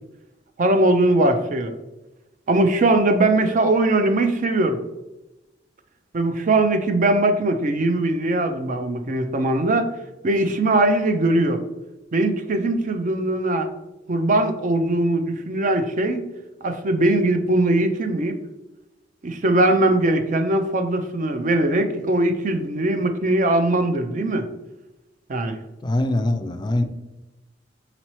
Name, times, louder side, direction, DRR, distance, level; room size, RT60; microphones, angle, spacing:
voice 1, 0.6-1.7 2.5-4.8 6.1-9.9 10.2-11.6 12.1-13.7 14.1-16.2 16.6-18.4 19.2-24.5 25.3-25.6, right 2 dB, 45° right, 7 dB, 0.5 m, -20 dB
voice 2, 25.8-26.8, left 1 dB, 25° left, 8 dB, 0.3 m, -22 dB
4.2 x 4.0 x 3.0 m, 0.98 s
head